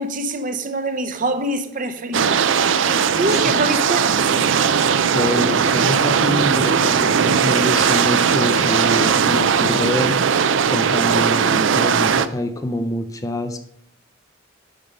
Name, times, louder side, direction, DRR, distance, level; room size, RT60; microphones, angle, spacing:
voice 1, 0.0-2.6 2.9-4.3, right 1 dB, 45° right, 0.8 m, -25 dB
sound 1, 2.1-12.3, right 6 dB, 75° right, 0.5 m, -18 dB
voice 2, 5.1-10.2 10.7-13.6, left 1 dB, 15° left, 0.5 m, -25 dB
8.8 x 5.3 x 5.3 m
head